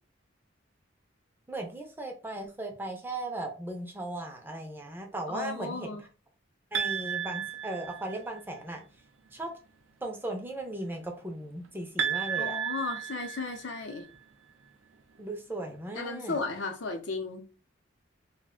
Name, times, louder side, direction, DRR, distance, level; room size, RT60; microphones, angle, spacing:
voice 1, 1.5-6.1 6.7-8.8 9.3-9.5 10.0-12.6 15.2-16.4, right 2 dB, 10° right, 0.4 m, -37 dB
voice 2, 5.3-6.0 12.4-14.1 16.0-17.4, left 3 dB, 70° left, 0.6 m, -35 dB
sound 1, 6.7-8.4 12.0-14.0, right 8 dB, 90° right, 0.5 m, -33 dB
2.4 x 2.1 x 3.6 m
head